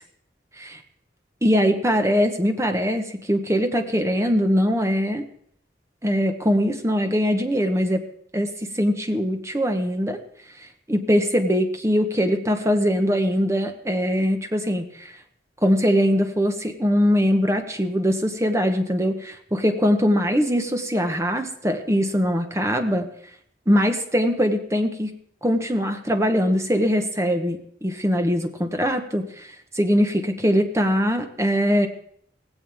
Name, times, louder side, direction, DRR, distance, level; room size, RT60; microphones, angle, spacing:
voice 1, 1.4-5.2 6.0-8.0 8.3-10.2 10.6-15.1 15.6-23.1 23.7-25.1 25.4-31.9, equal, 15° right, 6 dB, 1.2 m, -22 dB
17.5 x 16.5 x 3.6 m, 0.64 s
head